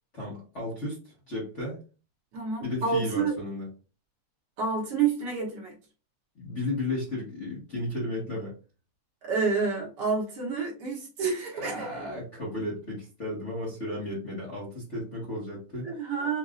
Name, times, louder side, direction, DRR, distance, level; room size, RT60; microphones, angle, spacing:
voice 1, 0.1-1.8 2.6-3.7 6.3-8.5 11.5-16.1, left 1 dB, 40° left, -7 dB, 1.0 m, -34 dB
voice 2, 2.3-3.4 4.6-5.7 9.2-12.1 15.8-16.4, right 5 dB, 60° right, -3 dB, 1.6 m, -29 dB
5.6 x 2.6 x 2.4 m, 0.34 s
omnidirectional pair, 3.4 m